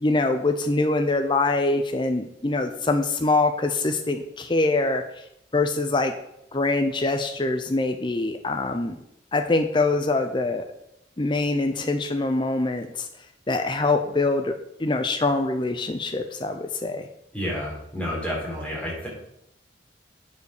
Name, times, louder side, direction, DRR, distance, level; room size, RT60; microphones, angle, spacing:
voice 1, 0.0-5.0 5.5-6.1 6.5-8.9 9.3-10.7 11.2-13.1 13.5-14.5 14.8-17.1, left 2 dB, 25° left, 6 dB, 0.6 m, -24 dB
voice 2, 17.3-19.1, equal, 5° left, -5 dB, 3.9 m, -30 dB
9.3 x 5.3 x 6.5 m, 0.78 s
head